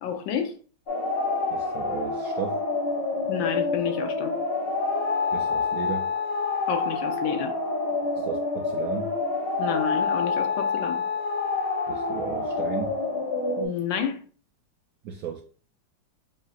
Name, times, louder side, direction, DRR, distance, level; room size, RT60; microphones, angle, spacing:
voice 1, 0.0-0.5 3.3-4.3 6.7-7.5 9.6-11.0 13.6-14.2, left 8 dB, 85° left, 1.5 m, -29 dB
sound 1, 0.9-13.7, left 3 dB, 70° left, 2.2 m, -27 dB
voice 2, 1.5-2.6 5.3-6.1 8.2-9.1 11.9-12.9 15.0-15.4, right 8 dB, 75° right, 0.8 m, -35 dB
7.1 x 2.7 x 2.4 m
omnidirectional pair, 2.0 m